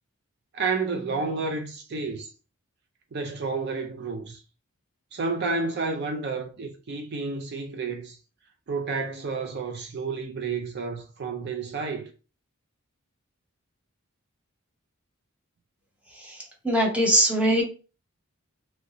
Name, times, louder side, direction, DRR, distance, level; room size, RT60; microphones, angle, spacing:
voice 1, 0.5-2.3 3.1-4.4 5.1-8.2 8.7-12.1, right 4 dB, 50° right, 0.4 m, -30 dB
voice 2, 16.6-17.6, equal, 5° right, 0.7 m, -21 dB
3.0 x 2.6 x 2.9 m
head